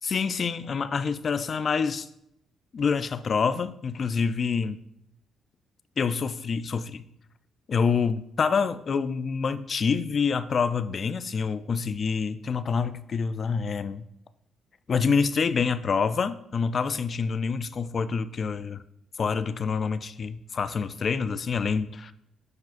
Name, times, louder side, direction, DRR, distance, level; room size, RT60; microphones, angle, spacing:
voice 1, 0.0-2.1 2.7-4.8 6.0-7.1 7.7-14.0 14.9-18.8 19.2-22.1, left 5 dB, 45° left, 14 dB, 0.3 m, -27 dB
9.3 x 4.9 x 2.5 m, 0.78 s
cardioid pair, 90°, 0 cm